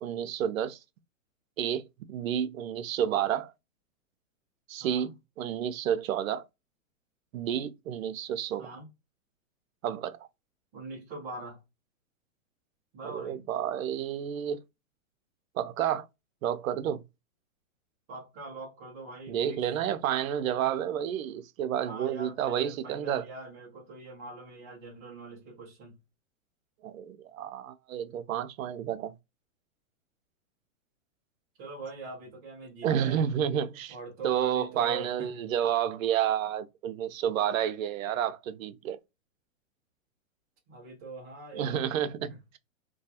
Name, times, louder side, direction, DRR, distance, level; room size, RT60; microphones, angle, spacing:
voice 1, 0.0-0.8 1.6-3.5 4.7-5.1 5.4-6.4 7.3-8.8 9.8-10.3 13.0-14.6 15.6-16.1 16.4-17.0 19.3-23.3 26.8-29.1 32.8-33.9 34.2-39.0 41.5-42.3, right 9 dB, 90° right, 0.5 m, -30 dB
voice 2, 4.8-5.1 8.6-8.9 10.7-11.6 12.9-13.5 18.1-19.6 21.8-26.0 31.6-33.2 33.9-35.4 40.7-41.9 42.3-42.4, right 2 dB, 15° right, 0.4 m, -43 dB
2.3 x 2.3 x 2.7 m
hypercardioid pair, 155°, 40 cm